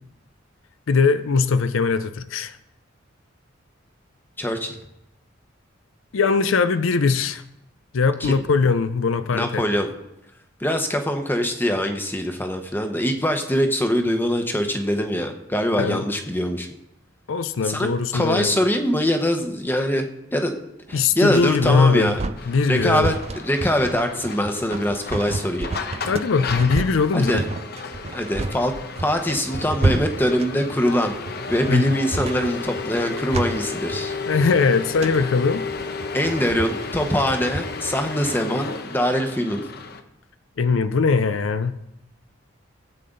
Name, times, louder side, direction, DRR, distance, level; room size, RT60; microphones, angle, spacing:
voice 1, 0.9-2.6 6.1-7.4 7.9-9.6 15.8-16.0 17.3-18.6 20.9-22.1 22.5-23.1 26.1-27.3 31.7-32.0 34.3-35.7 40.6-41.8, left 4 dB, 85° left, 12 dB, 0.5 m, -20 dB
voice 2, 4.4-4.7 8.2-8.4 9.3-9.9 10.6-16.7 17.6-20.5 20.9-22.2 22.7-25.7 27.1-27.4 28.1-28.7 29.0-31.1 31.5-34.1 36.1-39.6, equal, 10° left, 5 dB, 1.0 m, -23 dB
sound 1, 20.9-38.4, right 2 dB, 30° right, 0.5 m, -30 dB
sound 2, 22.4-40.0, left 4 dB, 50° left, 0.9 m, -33 dB
17.5 x 8.5 x 3.9 m, 0.88 s
head